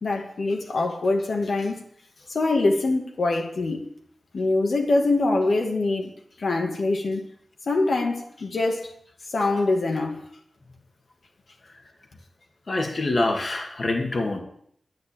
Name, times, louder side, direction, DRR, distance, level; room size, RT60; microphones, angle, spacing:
voice 1, 0.0-1.8 2.3-3.8 4.3-6.1 6.4-7.3 7.7-8.9 9.3-10.2, left 2 dB, 65° left, 2.0 m, -24 dB
voice 2, 12.7-14.4, left 2 dB, 50° left, 1.9 m, -25 dB
10.5 x 10.5 x 8.9 m
wide cardioid pair, 130°, 0 cm